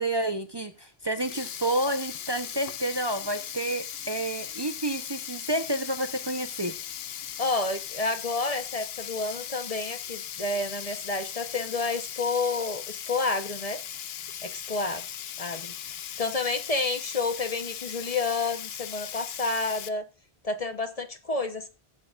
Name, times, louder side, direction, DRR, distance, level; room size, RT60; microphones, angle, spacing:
voice 1, 0.0-6.7, right 1 dB, 25° right, 0.8 m, -30 dB
Sink (filling or washing), 1.0-19.9, left 9 dB, 80° left, 0.9 m, -38 dB
voice 2, 7.4-13.8 14.4-15.0 15.4-15.7 16.2-20.0 20.4-21.7, left 3 dB, 40° left, 1.0 m, -30 dB
17.5 x 7.8 x 2.4 m
omnidirectional pair, 1.0 m